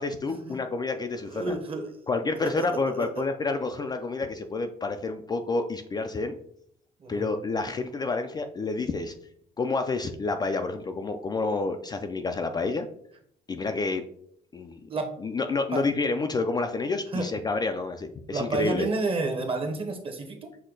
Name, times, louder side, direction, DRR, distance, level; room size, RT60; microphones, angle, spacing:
voice 1, 0.0-1.5 2.1-6.3 7.1-9.1 9.6-12.9 13.5-14.0 14.5-14.8 15.2-18.9, left 3 dB, 25° left, 6 dB, 0.3 m, -29 dB
voice 2, 1.1-2.0 2.4-3.2 7.0-7.3 14.9-15.1 15.7-15.8 17.1-17.3 18.3-20.5, right 3 dB, 35° right, 5 dB, 0.9 m, -30 dB
6.3 x 2.2 x 3.8 m, 0.67 s
cardioid pair, 110°, 17 cm